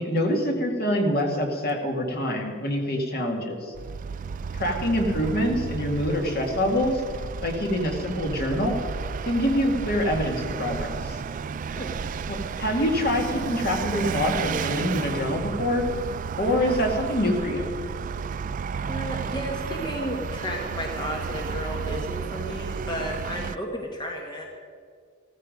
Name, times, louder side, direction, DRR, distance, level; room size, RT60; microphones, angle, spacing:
voice 1, 0.0-3.7 4.5-7.0 7.4-8.8 9.2-11.2 12.3-15.8 16.4-17.7, equal, 50° left, 2 dB, 2.1 m, -25 dB
Vehicle, 3.7-23.6, right 6 dB, 40° right, 0.3 m, -32 dB
voice 2, 18.9-24.5, equal, 20° left, 0 dB, 1.4 m, -33 dB
15.0 x 14.5 x 5.2 m, 2.1 s
head